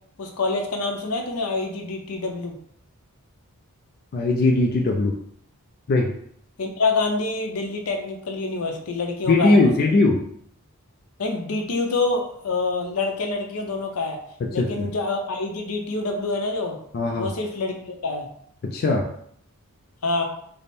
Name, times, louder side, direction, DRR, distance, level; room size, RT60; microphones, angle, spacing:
voice 1, 0.2-2.6 6.6-9.9 11.2-14.2 14.5-16.8 17.2-18.3 20.0-20.2, left 3 dB, 75° left, 3 dB, 0.6 m, -26 dB
voice 2, 4.1-5.1 5.9-6.1 9.3-10.2 14.6-14.9 16.9-17.3 18.6-19.1, left 2 dB, 45° left, 1 dB, 0.3 m, -19 dB
3.3 x 2.1 x 4.2 m, 0.67 s
head